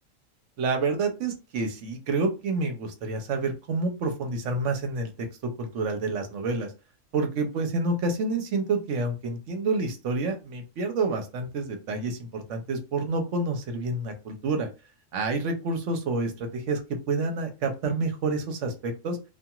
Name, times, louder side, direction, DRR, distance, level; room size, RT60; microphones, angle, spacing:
voice 1, 0.6-6.7 7.1-14.7 15.1-19.2, right 3 dB, 70° right, 5 dB, 1.0 m, -28 dB
2.8 x 2.5 x 2.3 m, 0.29 s
omnidirectional pair, 1.4 m